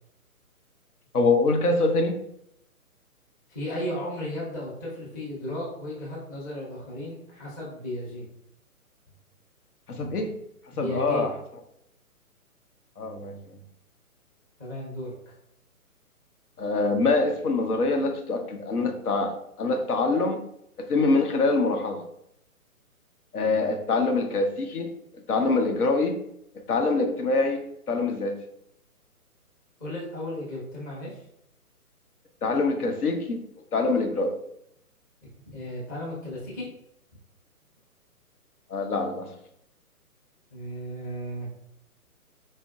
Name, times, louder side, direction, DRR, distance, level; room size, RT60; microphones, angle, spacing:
voice 1, 1.1-2.2 9.9-10.3 10.8-11.3 13.0-13.6 16.6-20.4 20.8-22.1 23.3-24.9 25.3-26.2 26.7-28.4 32.4-33.4 33.7-34.4 38.7-39.3, left 3 dB, 75° left, 4 dB, 0.8 m, -24 dB
voice 2, 3.5-8.2 10.7-11.3 14.6-15.1 29.8-31.2 35.5-36.7 40.5-41.5, left 1 dB, 15° left, -7 dB, 0.5 m, -34 dB
4.2 x 2.5 x 2.3 m, 0.75 s
figure-of-eight pair, 140°, 45 cm